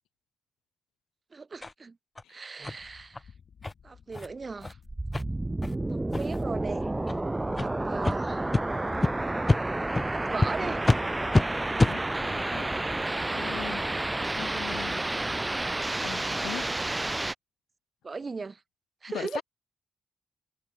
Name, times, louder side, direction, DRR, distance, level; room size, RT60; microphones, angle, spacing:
voice 1, 1.3-2.0 2.3-3.3 3.8-4.8 5.9-6.9 7.6-8.4 10.1-10.8 18.0-18.6 19.0-19.4, right 4 dB, 40° right, 2.0 m, -37 dB
sound 1, 1.6-1.7 2.2-2.3 2.6-2.8 3.1-3.2 3.6-3.7 4.1-4.3 4.6-4.7 5.1-5.2 5.6-5.7 6.1-6.4 7.0-7.2 7.5-7.7 8.0-8.2 8.5-8.6 9.0-9.1 9.5-9.6 9.9-10.1 10.4-10.5 10.8-11.0 11.3-11.4 11.8-11.9, left 2 dB, 25° left, 0.4 m, -25 dB
sound 2, 2.8-15.4, left 7 dB, 60° left, 5.2 m, -53 dB
sound 3, 4.9-17.3, right 2 dB, 20° right, 0.6 m, -30 dB
voice 2, 11.8-12.7 13.3-13.9 14.3-15.0 16.0-16.7 19.1-19.4, left 13 dB, 85° left, 1.1 m, -40 dB
supercardioid pair, 55°, 0 cm